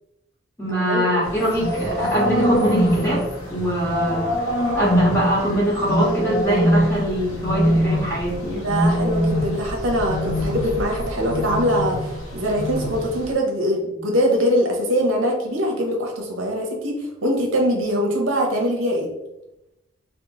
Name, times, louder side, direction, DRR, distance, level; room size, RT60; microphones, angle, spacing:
voice 1, 0.6-3.2 3.5-4.4 4.7-8.6, equal, 15° left, -7 dB, 1.0 m, -22 dB
sound 1, 1.2-13.3, equal, 90° left, 0.6 m, -24 dB
voice 2, 8.5-17.0 17.2-19.1, equal, 70° right, 0 dB, 0.6 m, -22 dB
2.8 x 2.1 x 2.9 m, 0.89 s
head